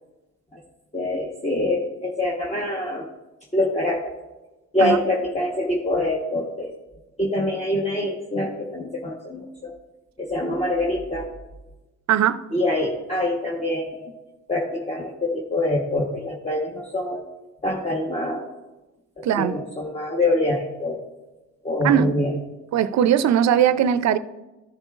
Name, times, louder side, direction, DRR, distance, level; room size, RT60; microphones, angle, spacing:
voice 1, 0.9-3.1 3.5-4.1 4.7-6.7 7.2-9.7 10.2-11.3 12.5-14.1 14.5-17.2 17.6-18.5 19.2-21.0 21.6-22.3, left 1 dB, 20° left, 1.1 m, -25 dB
voice 2, 12.1-12.4 19.2-19.6 21.8-22.1 22.7-24.2, right 9 dB, 65° right, 0.5 m, -19 dB
14.0 x 7.8 x 2.4 m
cardioid pair, 90°, 30 cm